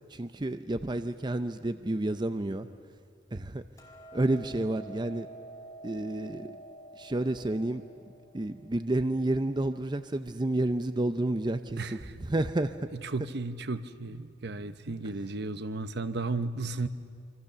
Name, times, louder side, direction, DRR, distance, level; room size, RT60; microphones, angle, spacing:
voice 1, 0.1-2.7 3.3-3.6 4.1-5.3 5.8-6.6 7.0-7.8 8.3-12.9 13.2-13.3 15.2-15.3, right 1 dB, 25° right, 10 dB, 0.6 m, -30 dB
Hammer, 3.8-10.0, right 2 dB, 15° left, 3.0 m, -49 dB
voice 2, 11.8-12.1 13.0-16.9, right 3 dB, 60° right, 11 dB, 0.9 m, -34 dB
27.0 x 25.0 x 6.8 m, 2.2 s
head